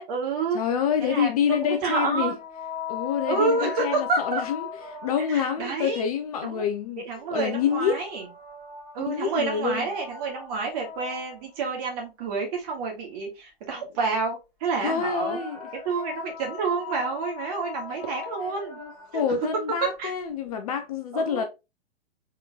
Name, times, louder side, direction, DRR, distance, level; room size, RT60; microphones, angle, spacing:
voice 1, 0.0-0.6 1.0-2.4 3.3-4.4 5.3-6.0 6.4-6.6 7.0-8.2 8.9-15.4 15.8-18.8 19.1-19.2 19.8-20.1 21.1-21.5, right 4 dB, 40° right, 2.1 m, -29 dB
voice 2, 0.5-2.3 2.9-4.6 4.9-7.0 7.3-8.0 9.1-9.9 14.8-15.7 18.8-21.4, left 7 dB, 35° left, 0.7 m, -27 dB
sound 1, 1.7-5.6 7.1-11.7 14.8-19.3, left 7 dB, ahead, 2.2 m, -39 dB
4.3 x 3.7 x 2.8 m
figure-of-eight pair, 110°, 31 cm